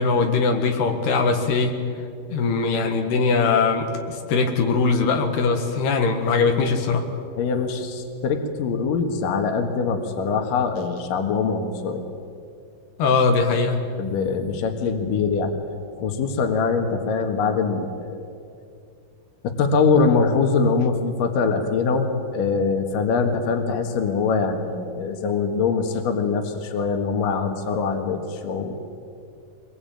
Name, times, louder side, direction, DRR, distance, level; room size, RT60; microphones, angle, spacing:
voice 1, 0.0-1.8 2.3-7.1 13.0-13.8, left 4 dB, 90° left, 4 dB, 3.8 m, -21 dB
voice 2, 7.4-12.0 14.0-15.5 16.0-18.2 19.4-28.8, left 5 dB, 65° left, 5 dB, 3.2 m, -23 dB
23.5 x 20.5 x 8.9 m, 2.4 s
omnidirectional pair, 4.5 m